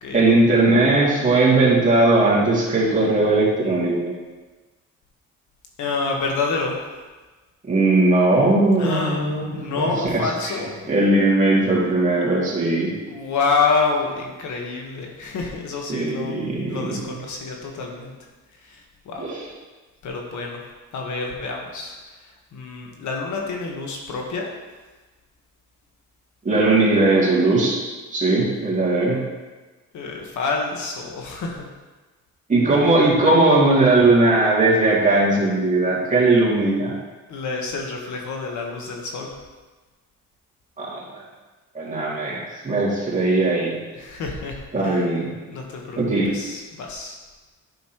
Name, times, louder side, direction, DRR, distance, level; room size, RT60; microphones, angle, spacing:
voice 1, 0.1-4.1 7.7-10.2 10.9-12.9 15.9-17.2 19.2-19.4 26.4-27.8 28.1-29.2 32.5-36.9 40.8-41.0 41.7-43.7 44.7-45.3 46.0-46.3, right 2 dB, 25° right, -6 dB, 2.5 m, -19 dB
voice 2, 5.8-6.8 8.8-10.7 13.1-18.1 18.6-19.2 20.0-20.6 20.9-22.0 22.5-24.5 29.9-31.7 37.3-39.3 43.9-45.1 45.5-46.0 46.3-47.1, left 4 dB, 75° left, 0 dB, 1.4 m, -27 dB
9.2 x 6.2 x 3.1 m, 1.3 s
cardioid pair, 90°, 30 cm